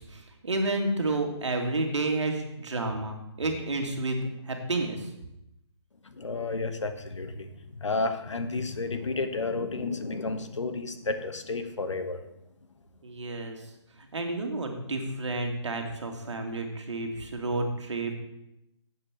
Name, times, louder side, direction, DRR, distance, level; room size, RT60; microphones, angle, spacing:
voice 1, 0.0-5.1 13.0-13.6 14.1-18.1, right 2 dB, 75° right, 3 dB, 2.3 m, -30 dB
voice 2, 6.1-12.2, left 3 dB, 90° left, 8 dB, 1.3 m, -31 dB
7.8 x 6.8 x 7.3 m, 0.85 s
hypercardioid pair, 165°, 15 cm